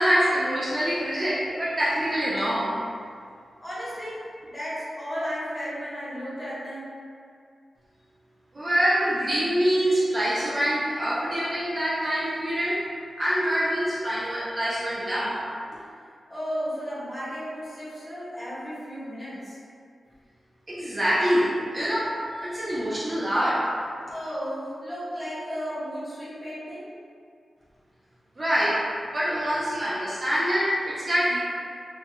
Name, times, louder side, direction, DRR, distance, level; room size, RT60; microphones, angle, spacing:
voice 1, 0.0-2.8 8.5-12.8 13.2-15.4 20.7-22.2 22.4-23.7 28.4-28.8 29.1-31.4, equal, 30° right, -8 dB, 0.3 m, -25 dB
voice 2, 3.6-6.9 16.3-19.6 24.1-26.8, equal, 15° left, -11 dB, 0.8 m, -34 dB
2.2 x 2.1 x 2.7 m, 2.2 s
wide cardioid pair, 155°, 0 cm